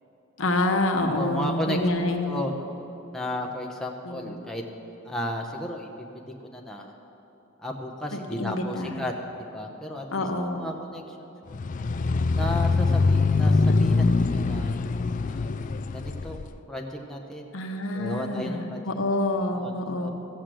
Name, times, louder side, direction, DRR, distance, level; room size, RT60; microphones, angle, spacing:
voice 1, 0.4-2.5 4.0-4.4 8.1-9.1 10.1-10.7 17.5-20.1, left 2 dB, 70° left, 4 dB, 1.1 m, -27 dB
voice 2, 1.1-2.5 3.1-4.6 5.0-6.1 6.5-6.9 7.6-9.1 9.4-10.2 10.6-11.6 12.3-14.9 15.2-15.5 15.9-17.5 17.9-18.8 19.5-20.1, left 1 dB, 5° left, 0 dB, 0.8 m, -34 dB
sound 1, 11.5-16.5, left 3 dB, 40° left, 0.3 m, -23 dB
15.0 x 6.6 x 7.6 m, 3.0 s
head